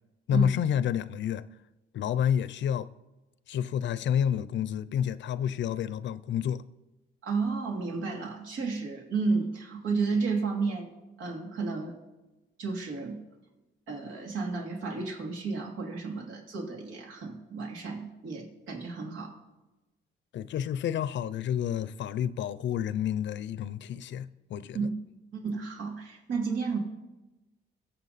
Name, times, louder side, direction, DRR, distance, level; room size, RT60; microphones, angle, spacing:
voice 1, 0.3-1.4 1.9-2.9 3.5-6.6 20.3-24.8, left 9 dB, 65° left, 0.6 m, -29 dB
voice 2, 7.2-10.9 11.2-12.0 12.6-13.2 13.9-19.3 24.7-24.9 25.3-26.8, right 4 dB, 80° right, 2.9 m, -32 dB
22.5 x 7.9 x 4.2 m
cardioid pair, 90°, 20 cm